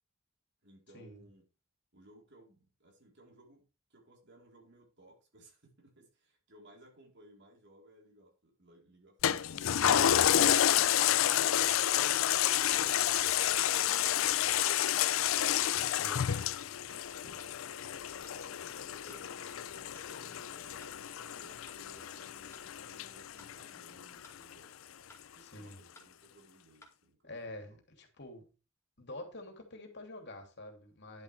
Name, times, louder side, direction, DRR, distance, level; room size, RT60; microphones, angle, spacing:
voice 1, 0.6-1.5 1.9-3.6 3.9-9.6 10.3-16.5 16.8-21.0 21.4-27.8, right 1 dB, 60° right, 4.1 m, -60 dB
Toilet flush, 9.2-24.0 24.5-24.6, left 11 dB, 90° left, 0.5 m, -30 dB
voice 2, 15.8-16.3 25.4-25.8 27.2-28.5 29.0-31.2, left 1 dB, 60° left, 2.9 m, -47 dB
sound 1, 16.5-16.7 17.4-17.6 18.2-18.4 19.1-19.3 20.0-20.1 20.8-21.0 21.7-21.8 22.5-22.7 23.4-23.6 24.2-24.4 25.1-25.3 26.0-26.1 26.8-27.0, left 1 dB, 15° left, 2.3 m, -57 dB
11.0 x 7.6 x 3.5 m
head